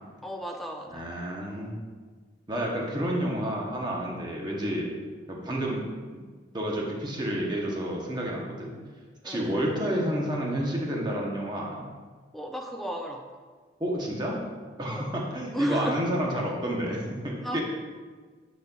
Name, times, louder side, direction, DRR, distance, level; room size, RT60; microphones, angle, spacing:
voice 1, 0.2-1.1 9.2-9.5 12.3-13.2 14.9-15.1 15.5-16.0 17.4-17.6, equal, ahead, 1 dB, 0.5 m, -35 dB
voice 2, 0.9-1.8 2.5-4.9 5.3-5.8 6.1-6.2 6.5-8.7 9.2-11.9 13.8-14.4 14.8-17.6, equal, 25° right, -2 dB, 0.9 m, -30 dB
10.5 x 4.2 x 2.4 m, 1.5 s
head